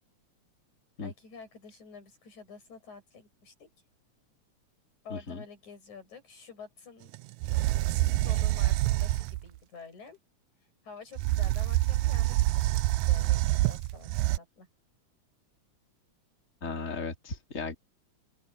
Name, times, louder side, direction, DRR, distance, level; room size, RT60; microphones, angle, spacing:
voice 1, 1.0-3.7 5.0-7.2 8.0-10.2 10.8-14.7, left 5 dB, 85° left, 9.1 m, -49 dB
voice 2, 5.1-5.4 16.6-17.8, left 4 dB, 25° left, 4.1 m, -36 dB
sound 1, 7.1-7.2 7.4-9.4 11.2-14.4, right 17 dB, 85° right, 1.9 m, -26 dB
open air
omnidirectional pair, 3.3 m